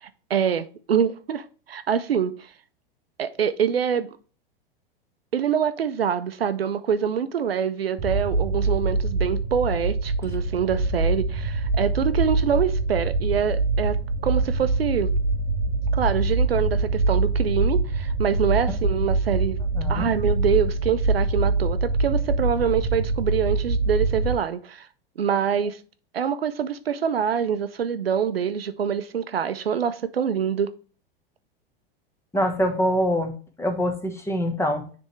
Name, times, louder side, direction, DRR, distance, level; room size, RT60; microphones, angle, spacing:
voice 1, 0.0-2.4 3.2-4.1 5.3-14.0 14.2-15.1 15.9-19.6 19.9-24.9 25.2-25.8 26.1-30.7, right 7 dB, 80° right, 0.6 m, -25 dB
sound 1, 8.0-24.4, right 3 dB, 45° right, 1.3 m, -24 dB
voice 2, 19.7-20.1 32.3-33.3 33.6-34.8, equal, 10° left, 1.2 m, -24 dB
10.0 x 3.4 x 3.1 m
figure-of-eight pair, 90°, 29 cm